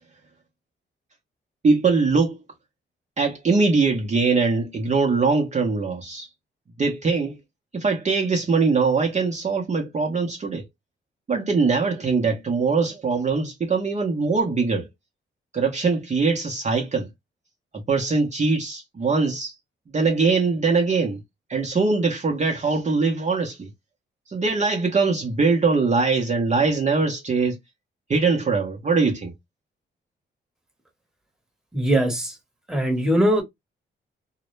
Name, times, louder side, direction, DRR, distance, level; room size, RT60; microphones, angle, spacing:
voice 1, 1.6-2.4 3.2-6.3 6.8-7.4 7.7-10.7 11.3-14.9 15.5-17.1 17.9-19.5 19.9-21.2 21.5-23.7 24.3-27.6 28.1-29.3, right 4 dB, 35° right, 0.6 m, -22 dB
voice 2, 31.7-32.4 32.7-33.4, right 1 dB, 5° right, 1.0 m, -21 dB
2.1 x 2.0 x 3.0 m
cardioid pair, 80°, 20 cm